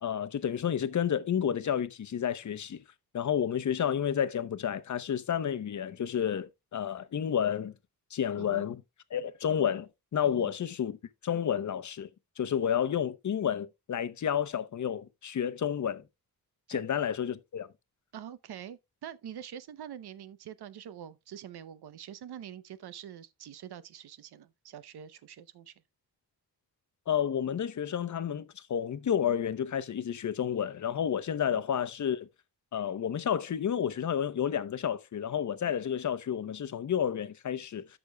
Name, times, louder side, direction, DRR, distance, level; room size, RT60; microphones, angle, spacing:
voice 1, 0.0-2.8 3.1-7.7 8.1-8.8 9.1-11.0 11.2-12.1 12.4-16.0 16.7-17.7 27.1-32.3 32.7-37.9, left 9 dB, 50° left, 0.8 m, -30 dB
voice 2, 18.1-25.7 31.5-31.6, right 10 dB, 90° right, 0.8 m, -45 dB
13.5 x 6.1 x 2.3 m
wide cardioid pair, 130°, 38 cm